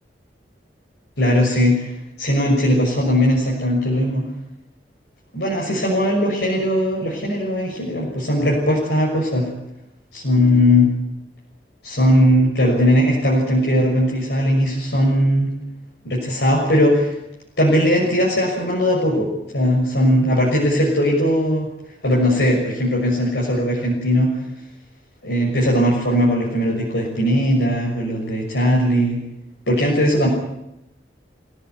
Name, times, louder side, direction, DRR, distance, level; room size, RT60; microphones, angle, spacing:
voice 1, 1.2-1.9 2.2-4.2 5.3-9.5 10.1-10.9 11.8-15.5 16.0-17.1 17.6-21.7 22.0-24.4 25.2-29.2 29.7-30.3, equal, 75° left, -3 dB, 6.6 m, -18 dB
25.5 x 17.5 x 9.7 m, 0.86 s
head